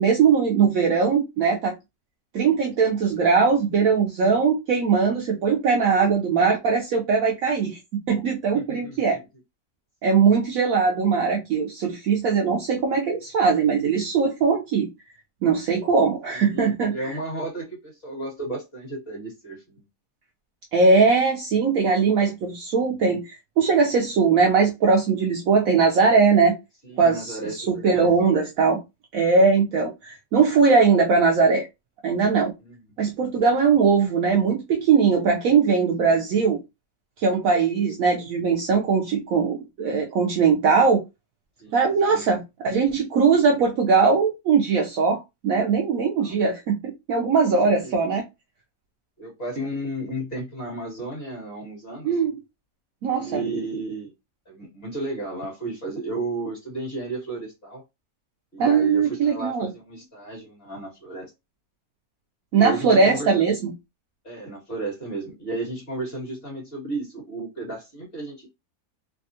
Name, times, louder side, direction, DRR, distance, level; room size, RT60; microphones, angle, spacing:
voice 1, 0.0-1.7 2.3-9.2 10.0-14.9 15.4-17.2 20.7-26.6 27.0-28.8 29.1-31.7 32.0-32.5 33.0-36.6 37.2-41.0 41.7-48.2 52.0-52.3 53.0-53.4 58.6-59.7 62.5-63.7, right 5 dB, 70° right, 0.9 m, -20 dB
voice 2, 8.5-9.2 10.0-10.2 16.3-19.8 26.9-28.3 32.6-32.8 36.0-36.2 41.6-42.2 46.2-46.4 47.5-48.0 49.2-52.1 53.1-54.1 54.5-57.8 58.5-61.3 62.5-63.3 64.2-68.5, right 2 dB, 35° left, 1.9 m, -33 dB
3.4 x 2.3 x 2.6 m
omnidirectional pair, 1.7 m